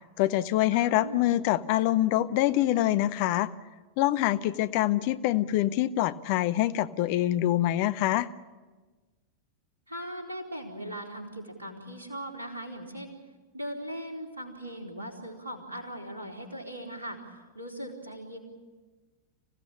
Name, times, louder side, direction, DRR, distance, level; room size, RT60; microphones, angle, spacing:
voice 1, 0.2-3.5 4.0-8.3, left 14 dB, 45° left, 14 dB, 0.8 m, -25 dB
voice 2, 0.7-1.3 9.9-13.1 13.5-18.4, right 1 dB, 80° right, 1 dB, 4.2 m, -39 dB
26.0 x 16.5 x 8.8 m, 1.3 s
figure-of-eight pair, 90°, 0 cm